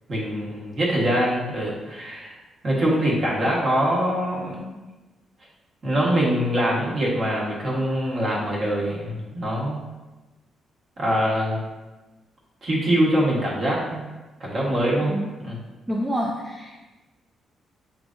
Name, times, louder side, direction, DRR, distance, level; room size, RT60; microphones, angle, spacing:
voice 1, 0.1-2.4 2.6-4.7 5.8-9.8 11.0-11.6 12.6-14.0 14.4-15.2 15.4-15.6, equal, 40° right, -4 dB, 1.2 m, -23 dB
voice 2, 15.9-16.9, equal, 10° right, -3 dB, 0.4 m, -28 dB
6.1 x 3.2 x 2.5 m, 1.2 s
cardioid pair, 155°, 0 cm